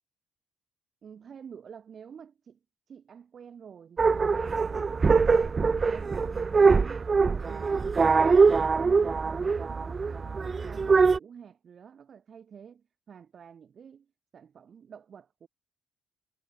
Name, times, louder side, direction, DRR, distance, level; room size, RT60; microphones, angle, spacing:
voice 1, 1.0-2.6 2.9-14.1 14.3-15.5, right 7 dB, 50° right, 5.2 m, -49 dB
sound 1, 4.0-11.2, right 4 dB, 35° right, 0.3 m, -23 dB
cardioid pair, 90°, 0 cm